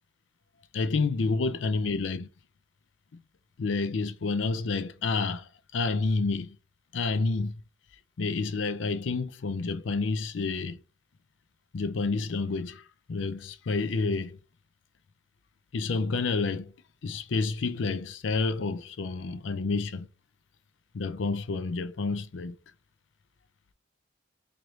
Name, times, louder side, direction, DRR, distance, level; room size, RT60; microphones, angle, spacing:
voice 1, 0.7-2.3 3.6-6.6 6.9-7.6 8.2-10.8 11.7-12.8 13.1-14.4 15.7-16.7 17.0-20.1 20.9-22.6, left 3 dB, 70° left, 0.5 m, -29 dB
4.6 x 2.6 x 3.1 m
head